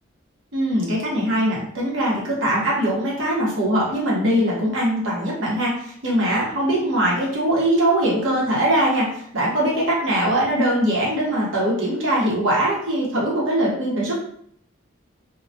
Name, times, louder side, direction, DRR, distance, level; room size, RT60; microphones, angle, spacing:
voice 1, 0.5-9.1 9.3-14.2, right 1 dB, 70° right, -5 dB, 0.9 m, -21 dB
2.2 x 2.1 x 2.6 m, 0.67 s
head